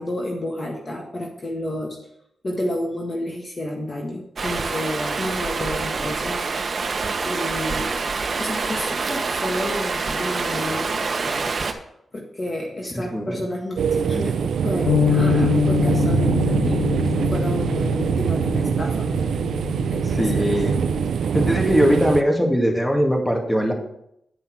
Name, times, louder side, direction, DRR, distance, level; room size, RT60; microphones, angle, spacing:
voice 1, 0.0-2.0 2.4-6.5 7.2-8.0 8.4-11.5 12.1-16.9 17.3-19.1 19.9-20.7, left 1 dB, 35° left, 0 dB, 1.6 m, -30 dB
Stream, 4.4-11.7, right 4 dB, 50° right, 1.1 m, -26 dB
voice 2, 12.9-13.4 20.1-20.8 21.3-23.7, equal, 10° left, 1 dB, 2.1 m, -20 dB
sound 1, 13.8-22.2, right 7 dB, 80° right, 0.5 m, -23 dB
Bass guitar, 14.9-21.1, left 9 dB, 75° left, 0.4 m, -25 dB
9.9 x 5.4 x 6.2 m, 0.76 s
cardioid pair, 75°, 0 cm